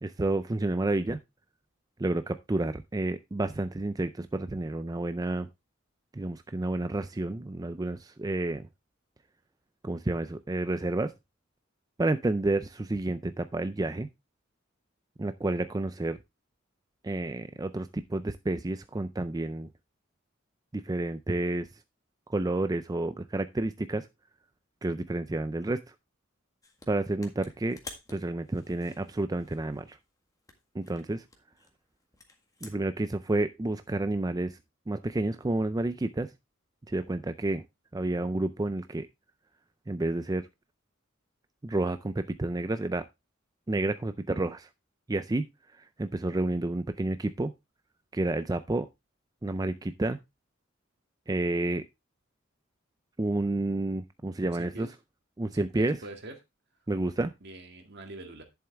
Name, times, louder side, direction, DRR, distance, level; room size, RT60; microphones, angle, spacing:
voice 1, 0.0-1.2 2.0-5.5 6.1-8.7 9.8-11.1 12.0-14.1 15.2-16.2 17.0-19.7 20.7-21.7 22.3-24.1 24.8-25.9 26.9-27.8 28.1-30.0 30.7-31.2 32.6-34.6 34.9-36.3 36.9-37.6 37.9-39.1 39.9-40.5 41.6-43.1 43.7-44.7 45.1-45.5 45.7-47.5 48.1-48.9 49.4-50.2 51.3-51.8 53.2-54.9 55.4-56.0 56.9-57.3, right 2 dB, 20° right, 11 dB, 0.4 m, -30 dB
sound 1, 26.6-26.9 27.2-30.0 30.4-33.1, left 3 dB, 15° left, 1.7 m, -50 dB
voice 2, 54.4-54.9 55.4-56.4 57.4-58.4, right 1 dB, 55° right, 5 dB, 2.0 m, -44 dB
11.0 x 7.2 x 3.4 m, 0.22 s
head